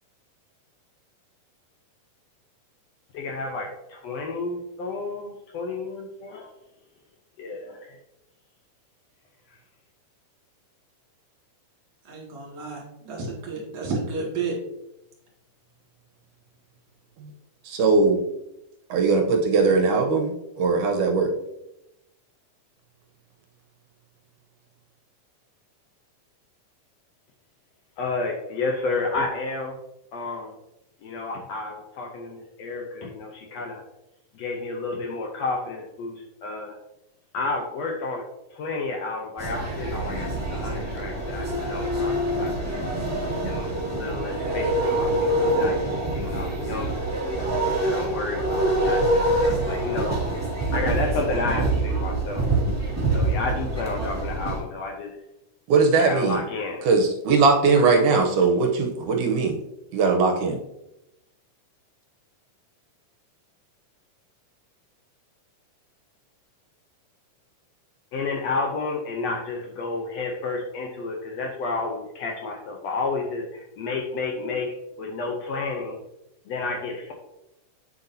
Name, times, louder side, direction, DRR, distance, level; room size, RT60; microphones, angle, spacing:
voice 1, 3.1-6.5 7.4-8.0 28.0-29.8 30.1-30.5 31.0-33.8 34.3-36.8 37.3-38.2 38.5-42.8 43.4-47.0 47.8-50.1 50.7-52.4 53.1-55.1 56.0-56.9 57.6-58.0 68.1-75.9 76.5-77.1, left 3 dB, 70° left, 0 dB, 1.6 m, -31 dB
voice 2, 12.0-14.5, right 4 dB, 55° right, -2 dB, 3.2 m, -31 dB
voice 3, 17.7-18.2 18.9-21.3 55.7-56.4 56.9-59.6 59.9-60.6, right 4 dB, 75° right, 3 dB, 2.2 m, -20 dB
sound 1, 39.4-54.6, right 1 dB, 5° right, 1.3 m, -25 dB
7.8 x 7.0 x 2.7 m, 0.89 s
omnidirectional pair, 3.7 m